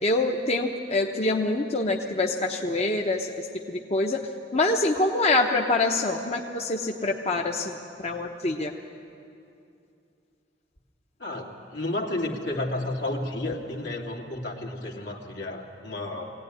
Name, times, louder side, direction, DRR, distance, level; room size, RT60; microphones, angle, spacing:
voice 1, 0.0-4.2 4.5-7.8 8.0-8.7, left 2 dB, 35° left, 2 dB, 1.0 m, -25 dB
voice 2, 11.2-16.3, left 1 dB, 75° left, 1 dB, 2.5 m, -32 dB
22.0 x 16.5 x 9.9 m, 2.7 s
head